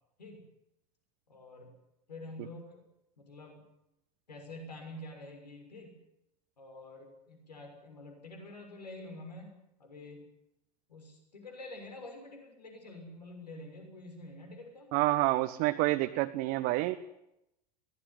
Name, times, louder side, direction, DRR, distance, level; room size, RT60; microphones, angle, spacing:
voice 1, 1.3-1.7 2.1-2.8 3.2-3.6 4.3-5.9 6.6-10.2 10.9-14.9, left 2 dB, 80° left, 3 dB, 6.5 m, -47 dB
voice 2, 14.9-17.0, right 18 dB, 50° right, 7 dB, 1.2 m, -28 dB
23.0 x 18.5 x 9.7 m, 0.85 s
figure-of-eight pair, 85°, 21 cm